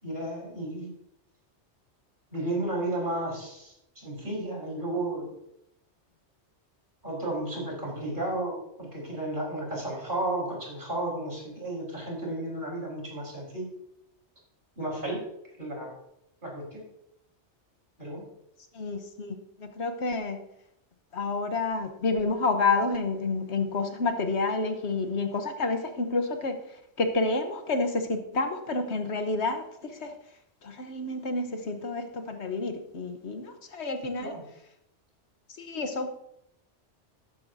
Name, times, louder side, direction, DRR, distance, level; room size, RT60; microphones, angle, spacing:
voice 1, 0.0-0.9 2.3-5.3 7.0-13.7 14.8-15.2 15.6-15.9 16.4-16.8 18.0-18.2 34.2-34.4, right 1 dB, 45° right, -2 dB, 4.5 m, -33 dB
voice 2, 18.7-20.4 21.1-30.1 30.6-34.4 35.6-36.1, left 3 dB, 70° left, 6 dB, 1.3 m, -29 dB
13.5 x 10.5 x 2.7 m, 0.78 s
omnidirectional pair, 1.2 m